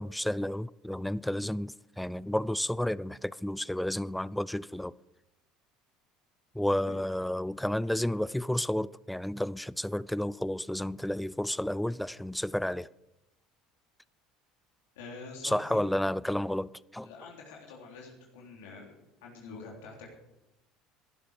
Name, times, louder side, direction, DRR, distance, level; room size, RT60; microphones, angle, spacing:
voice 1, 0.0-4.9 6.5-12.9 15.4-17.1, left 1 dB, 5° left, 0.5 m, -31 dB
voice 2, 15.0-15.8 17.0-18.9 19.2-20.1, left 4 dB, 75° left, 3.5 m, -46 dB
18.0 x 12.0 x 5.0 m
hypercardioid pair, 75°, 0 cm